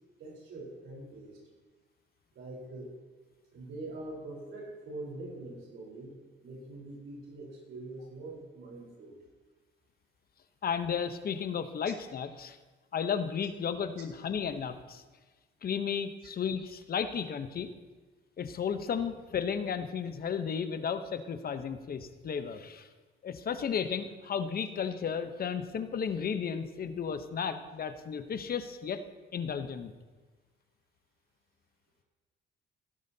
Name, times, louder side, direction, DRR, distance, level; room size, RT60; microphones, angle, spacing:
voice 1, 0.2-1.4 2.3-2.9 3.5-6.2 6.4-9.2, right 2 dB, 80° right, -2 dB, 4.1 m, -44 dB
voice 2, 10.6-12.6 12.9-15.0 15.6-17.7 18.4-22.9 23.2-29.0 29.3-29.9, left 7 dB, 50° left, 10 dB, 0.8 m, -33 dB
16.0 x 12.0 x 2.8 m, 1.3 s
cardioid pair, 90°, 20 cm